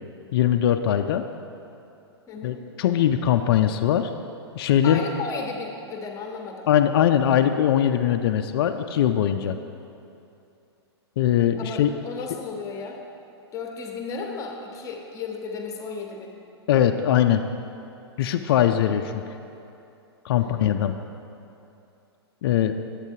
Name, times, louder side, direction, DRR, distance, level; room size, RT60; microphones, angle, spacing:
voice 1, 0.3-1.3 2.4-4.1 4.6-5.0 6.7-9.6 11.2-11.9 16.7-17.4 18.2-19.2 20.2-20.9 22.4-22.8, left 10 dB, 60° left, 7 dB, 0.4 m, -21 dB
voice 2, 2.3-2.6 4.8-6.7 11.5-13.0 13.5-16.3 20.4-20.7, left 4 dB, 25° left, 2 dB, 1.0 m, -34 dB
10.5 x 8.2 x 2.8 m, 2.7 s
hypercardioid pair, 120°, 14 cm